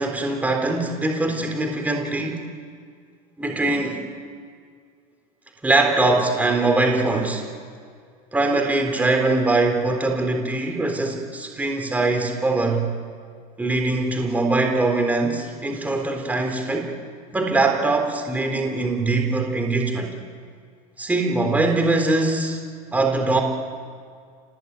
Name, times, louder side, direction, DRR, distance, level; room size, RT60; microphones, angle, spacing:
voice 1, 0.0-2.5 3.4-4.0 5.6-7.5 8.3-12.9 13.6-16.9 17.3-20.1 21.0-22.6 22.9-23.4, right 2 dB, 10° right, 3 dB, 3.5 m, -22 dB
27.5 x 19.5 x 9.3 m, 2.1 s
supercardioid pair, 135°, 19 cm